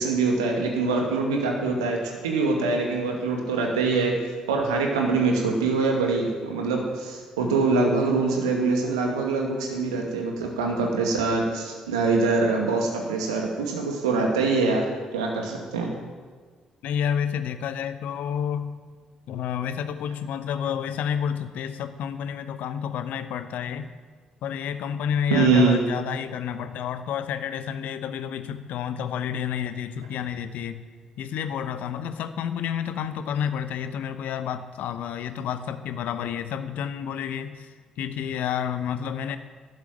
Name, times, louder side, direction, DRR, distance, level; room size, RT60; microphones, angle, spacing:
voice 1, 0.0-4.2 4.5-15.9 25.3-25.8, right 3 dB, 75° right, 1 dB, 2.3 m, -24 dB
voice 2, 16.8-18.7 19.3-23.9 24.4-30.8 31.2-39.4, left 8 dB, 60° left, 11 dB, 0.9 m, -30 dB
12.5 x 10.5 x 9.1 m, 1.5 s
figure-of-eight pair, 40°, 3 cm